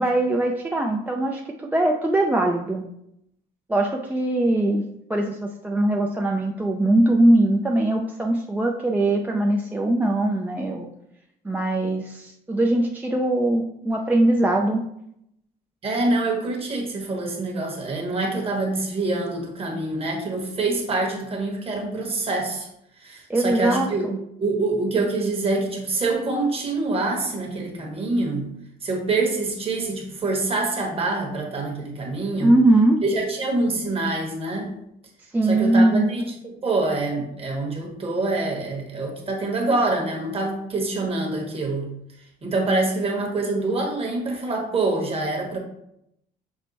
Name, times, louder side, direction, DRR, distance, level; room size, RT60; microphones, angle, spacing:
voice 1, 0.0-1.4 1.7-2.8 3.7-4.8 5.1-10.9 11.4-14.8 23.3-24.2 32.4-33.0 35.3-36.1, right 1 dB, 10° right, 1 dB, 0.4 m, -21 dB
voice 2, 15.8-22.7 23.0-24.1 24.4-28.5 28.8-32.5 33.0-34.7 35.4-41.9 42.4-45.6, right 2 dB, 35° right, 0 dB, 1.3 m, -25 dB
6.1 x 2.1 x 4.0 m, 0.78 s
cardioid pair, 110°, 17 cm